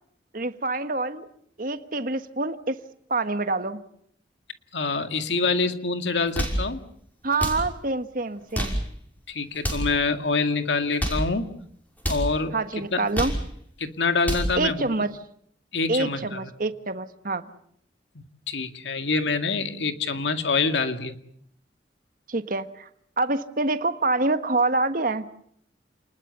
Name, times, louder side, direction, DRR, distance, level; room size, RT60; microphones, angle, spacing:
voice 1, 0.3-1.3 1.6-2.8 3.1-3.8 7.2-8.8 12.5-13.3 14.5-15.1 15.9-17.5 22.3-22.9 23.2-25.2, right 3 dB, 50° right, 10 dB, 1.4 m, -26 dB
voice 2, 4.7-6.8 9.3-11.5 12.1-12.5 12.9-13.0 13.8-14.9 15.7-16.5 18.5-21.2, left 4 dB, 90° left, 8 dB, 2.1 m, -26 dB
sound 1, 6.2-6.7 7.3-7.7 8.4-8.9 9.5-9.9 10.8-11.3 12.0-12.3 12.9-13.5 14.0-14.6, equal, 10° left, 5.8 m, -27 dB
29.5 x 20.5 x 6.9 m, 0.67 s
head